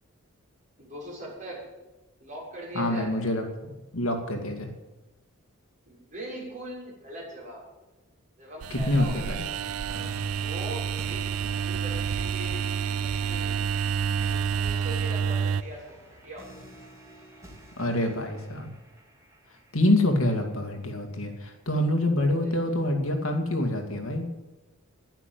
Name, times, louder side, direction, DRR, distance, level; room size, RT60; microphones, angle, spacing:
voice 1, 0.8-1.6 2.2-3.1 5.9-7.6 8.4-9.5 10.4-12.6 12.9-13.6 14.5-16.5 22.4-22.8, right 1 dB, 35° right, -4 dB, 6.5 m, -41 dB
voice 2, 2.7-4.7 8.7-9.4 17.8-18.7 19.7-24.3, left 1 dB, 70° left, 4 dB, 2.5 m, -26 dB
sound 1, 8.6-15.6, right 7 dB, 85° right, 0.4 m, -29 dB
sound 2, 9.9-20.9, right 1 dB, 15° right, 3.2 m, -49 dB
12.0 x 11.0 x 9.3 m, 1.1 s
head